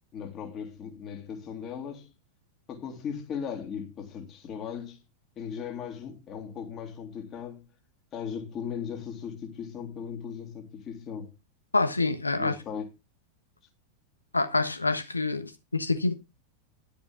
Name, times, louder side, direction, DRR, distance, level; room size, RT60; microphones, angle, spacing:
voice 1, 0.1-2.1 2.7-5.0 5.4-7.6 8.1-11.3 12.3-12.9, left 7 dB, 30° left, 3.3 m, -37 dB
voice 2, 11.7-12.5 14.3-16.1, left 3 dB, 80° left, 1.2 m, -26 dB
11.5 x 10.5 x 3.8 m
figure-of-eight pair, 90°, 0 cm